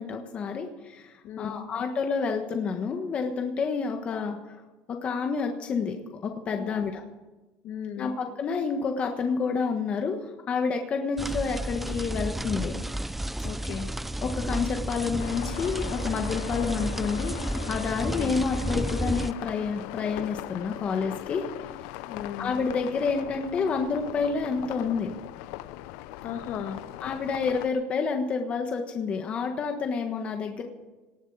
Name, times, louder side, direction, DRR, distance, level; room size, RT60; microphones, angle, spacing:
voice 1, 0.0-4.6 4.9-6.0 6.2-7.0 8.0-12.8 14.2-17.4 17.7-21.4 22.4-25.1 27.0-30.6, left 5 dB, 30° left, 4 dB, 1.4 m, -29 dB
voice 2, 1.2-1.7 6.6-7.0 7.6-8.1 13.4-13.9 18.0-18.4 22.1-22.6 26.2-26.8, left 8 dB, 55° left, 6 dB, 1.8 m, -36 dB
sound 1, 11.2-19.3, right 1 dB, 5° right, 0.4 m, -32 dB
sound 2, 15.2-27.7, left 15 dB, 85° left, 0.6 m, -40 dB
19.0 x 7.4 x 8.0 m, 1.2 s
cardioid pair, 155°, 4 cm